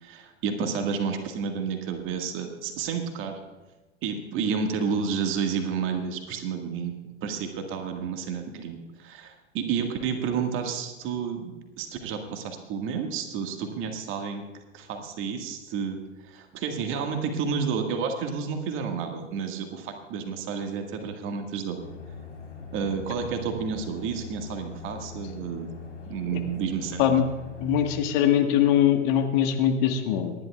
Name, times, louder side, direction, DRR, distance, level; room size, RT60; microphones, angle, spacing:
voice 1, 0.0-3.4 4.0-6.9 7.2-14.4 14.7-16.0 16.3-21.8 22.7-25.7 26.1-27.1, right 6 dB, 35° right, 4 dB, 1.8 m, -30 dB
sound 1, 21.8-28.0, left 5 dB, 80° left, 4.0 m, -41 dB
voice 2, 27.6-30.3, left 10 dB, 40° left, 5 dB, 1.6 m, -22 dB
27.5 x 11.0 x 2.4 m, 1.2 s
figure-of-eight pair, 95°, 36 cm